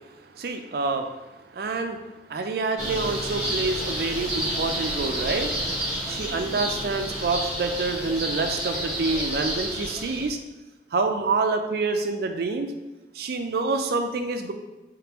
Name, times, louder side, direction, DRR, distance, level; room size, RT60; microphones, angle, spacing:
voice 1, 0.3-1.1 1.5-5.6 6.1-10.4 10.9-12.7 13.1-14.5, right 3 dB, 60° right, 6 dB, 0.4 m, -27 dB
sound 1, 2.8-10.3, right 1 dB, 5° right, 1.3 m, -30 dB
3.6 x 3.2 x 2.9 m, 1.1 s
head